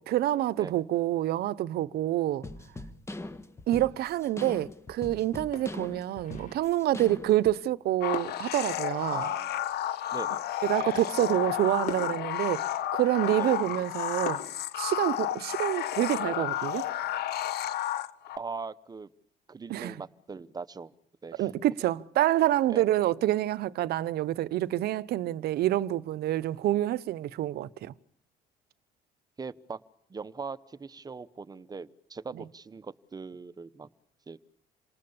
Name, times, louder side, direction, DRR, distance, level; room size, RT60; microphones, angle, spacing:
voice 1, 0.0-2.5 3.7-9.2 10.6-12.6 12.9-14.4 14.8-16.8 19.7-20.0 21.4-27.9, right 14 dB, 70° right, 0.9 m, -27 dB
sound 1, 2.4-7.6, left 2 dB, 15° left, 1.5 m, -41 dB
sound 2, 5.5-7.0 8.1-10.1 11.3-11.4 11.9-14.5, left 5 dB, 50° left, 4.3 m, -44 dB
sound 3, 8.0-18.4, left 12 dB, 70° left, 1.3 m, -32 dB
voice 2, 9.1-9.6 10.1-10.5 10.9-11.3 13.4-13.6 17.8-17.9 18.4-19.1 19.5-20.9 21.2-21.5 22.7-22.9 29.4-29.8 30.1-33.9 34.3-34.4, right 4 dB, 25° right, 0.9 m, -41 dB
28.0 x 19.5 x 7.1 m
cardioid pair, 110°, 17 cm